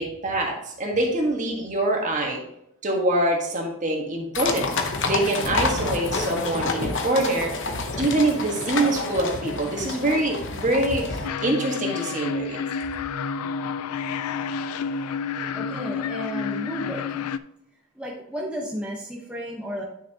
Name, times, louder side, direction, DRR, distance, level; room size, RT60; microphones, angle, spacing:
voice 1, 0.0-2.4 2.8-4.7 5.1-7.5 8.0-12.6, right 1 dB, 35° right, 1 dB, 1.5 m, -24 dB
sound 1, 4.3-11.3, left 3 dB, 55° left, 0.9 m, -28 dB
sound 2, 5.4-11.9 12.1-12.2 12.5-12.6, left 1 dB, 30° left, 1.7 m, -41 dB
sound 3, 11.2-17.4, left 6 dB, 85° left, 0.4 m, -30 dB
voice 2, 15.5-17.3 17.9-19.8, equal, 5° right, -4 dB, 1.0 m, -33 dB
9.8 x 5.9 x 2.9 m, 0.77 s
head